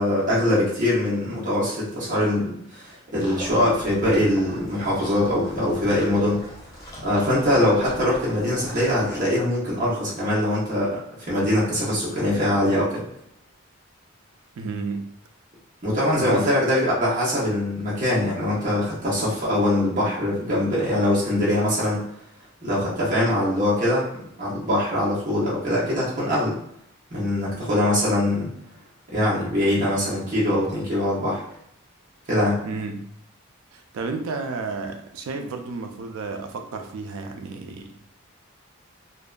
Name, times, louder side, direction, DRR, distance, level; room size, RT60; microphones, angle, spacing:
voice 1, 0.0-6.4 7.0-13.0 15.8-22.1 22.6-24.1 24.4-26.6 27.1-28.5 29.1-31.4 32.3-32.6, left 1 dB, 35° right, -8 dB, 0.8 m, -22 dB
sound 1, 3.2-9.2, equal, 15° left, 0.3 m, -41 dB
voice 2, 14.6-15.1 16.2-16.4 32.6-33.1 33.7-37.9, right 4 dB, 80° right, 5 dB, 0.3 m, -32 dB
2.6 x 2.1 x 2.3 m, 0.71 s
head